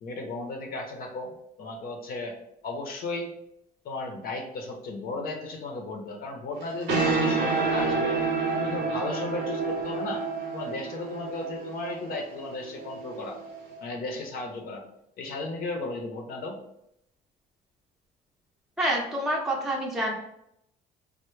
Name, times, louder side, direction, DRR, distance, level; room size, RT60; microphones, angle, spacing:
voice 1, 0.0-2.3 2.6-3.4 3.8-8.2 8.6-10.2 10.5-13.4 13.8-14.8 15.2-16.6, left 2 dB, 60° left, 2 dB, 0.6 m, -35 dB
sound 1, 6.6-13.8, right 4 dB, 80° right, 0.8 m, -29 dB
voice 2, 18.8-20.1, right 1 dB, ahead, -2 dB, 0.6 m, -27 dB
3.3 x 2.0 x 3.0 m, 0.77 s
cardioid pair, 110°, 17 cm